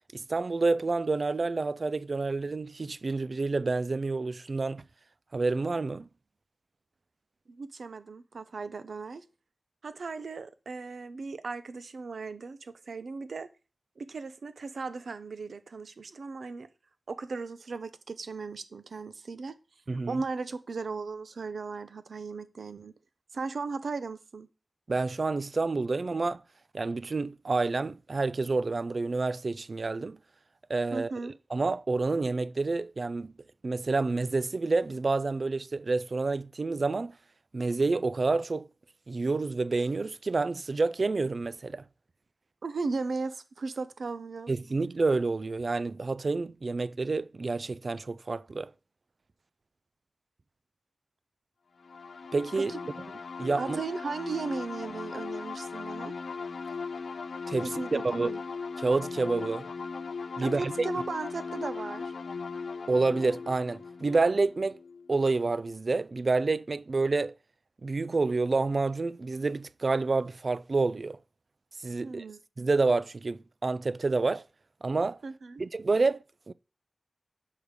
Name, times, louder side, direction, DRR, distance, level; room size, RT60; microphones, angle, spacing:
voice 1, 0.1-4.8 5.3-6.1 19.9-20.2 24.9-26.4 26.7-30.2 30.7-33.3 33.6-37.1 37.5-38.7 39.1-41.8 44.5-48.7 52.3-52.7 53.4-53.8 57.5-57.7 58.0-58.3 58.8-59.7 60.4-60.7 62.9-64.8 65.1-67.3 67.8-71.2 71.8-72.2 72.6-74.4 74.8-75.2 75.6-76.5, right 3 dB, 55° right, 0.3 m, -28 dB
voice 2, 7.5-9.2 9.8-13.5 14.0-16.7 17.1-19.5 20.1-22.9 23.3-24.5 30.9-31.3 42.6-44.5 52.6-52.8 53.6-56.1 57.6-58.4 60.4-62.1 72.0-72.4 75.2-75.6, right 4 dB, 85° right, 0.7 m, -36 dB
sound 1, 51.8-65.3, left 4 dB, 85° left, 0.5 m, -38 dB
6.7 x 5.3 x 4.7 m
wide cardioid pair, 75°, 0 cm